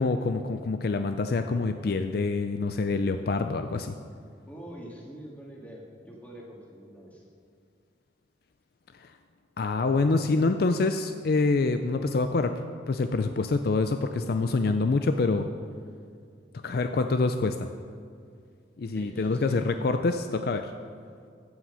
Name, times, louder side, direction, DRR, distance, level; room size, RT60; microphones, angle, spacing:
voice 1, 0.0-3.9 8.9-9.1 9.6-15.5 16.5-17.7 18.8-20.7, left 3 dB, 55° left, 8 dB, 0.4 m, -26 dB
voice 2, 4.5-7.2 18.9-19.6, right 1 dB, 10° left, -3 dB, 1.8 m, -44 dB
15.0 x 5.9 x 5.6 m, 2.2 s
head